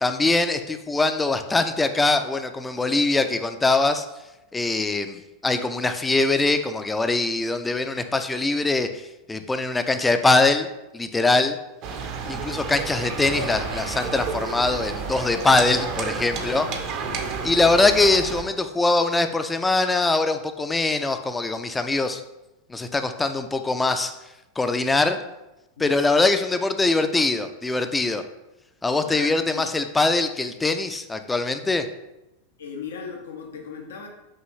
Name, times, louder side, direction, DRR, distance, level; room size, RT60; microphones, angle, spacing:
voice 1, 0.0-4.1 4.5-10.7 10.9-11.6 12.3-16.7 17.4-22.2 22.7-24.2 24.6-25.2 25.8-28.2 28.8-31.9, left 3 dB, 10° left, 8 dB, 0.3 m, -22 dB
sound 1, 11.8-18.4, right 5 dB, 50° right, 0.6 m, -31 dB
voice 2, 16.4-16.8 25.8-26.0 29.0-29.7 32.6-34.1, left 6 dB, 85° left, 2 dB, 0.6 m, -38 dB
5.5 x 2.6 x 3.1 m, 0.97 s
hypercardioid pair, 115°, 0 cm